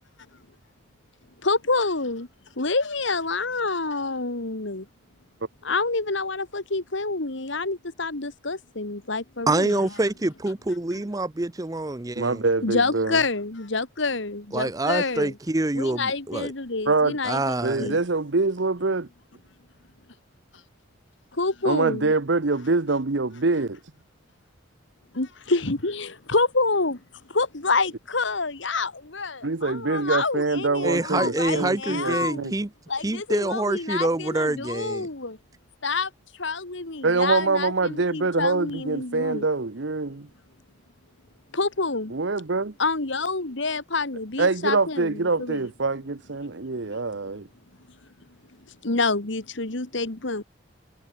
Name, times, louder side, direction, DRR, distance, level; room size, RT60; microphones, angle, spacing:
voice 1, 1.4-2.3 2.6-4.9 5.6-9.9 12.6-15.3 15.7-18.0 21.3-22.1 25.1-27.0 27.3-32.5 32.9-35.4 35.8-36.1 36.4-39.5 41.5-42.1 42.8-45.6 48.8-50.4, left 3 dB, 65° left, 1.8 m, -27 dB
voice 2, 9.5-12.4 14.5-16.5 17.2-17.9 30.8-32.7 33.0-35.1, right 2 dB, 15° right, 0.5 m, -26 dB
voice 3, 12.2-13.2 16.9-17.2 17.6-19.1 21.6-23.8 29.4-32.5 37.0-40.3 42.1-42.7 44.4-47.5, right 3 dB, 65° right, 0.9 m, -24 dB
head